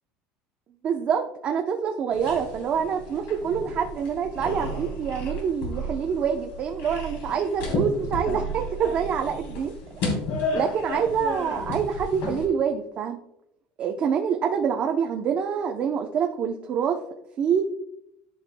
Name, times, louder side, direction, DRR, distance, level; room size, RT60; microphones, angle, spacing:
voice 1, 0.8-10.0 10.5-13.2 13.8-17.0 17.4-17.6, right 7 dB, 35° right, 2 dB, 0.7 m, -26 dB
sound 1, 2.1-12.5, left 1 dB, 60° left, 3.4 m, -32 dB
14.0 x 5.8 x 2.2 m, 0.77 s
cardioid pair, 155°, 4 cm